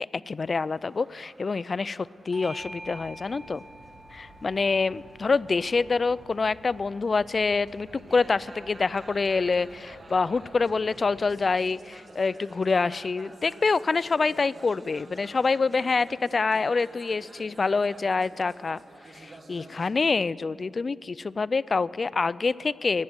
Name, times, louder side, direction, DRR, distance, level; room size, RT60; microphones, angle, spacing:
voice 1, 0.0-3.6 4.1-18.8 19.1-23.0, left 4 dB, 45° left, 20 dB, 0.3 m, -26 dB
sound 1, 0.6-19.9, right 2 dB, 45° right, 1.7 m, -50 dB
Bell / Doorbell, 2.3-7.2, right 1 dB, 15° right, 0.6 m, -47 dB
sound 2, 2.6-11.4, right 1 dB, 65° right, 3.2 m, -53 dB
12.5 x 8.8 x 9.5 m, 2.2 s
cardioid pair, 70°, 0 cm